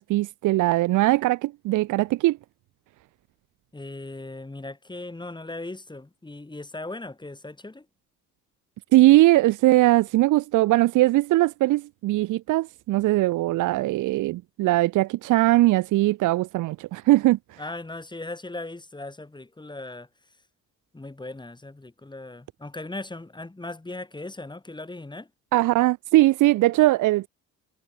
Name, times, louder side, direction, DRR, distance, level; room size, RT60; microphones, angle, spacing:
voice 1, 0.0-2.4 8.9-17.6 25.5-27.3, right 17 dB, 85° right, 1.0 m, -20 dB
voice 2, 3.7-7.9 17.6-20.4 20.9-25.3, left 2 dB, 15° left, 7.2 m, -38 dB
cardioid pair, 90°, 30 cm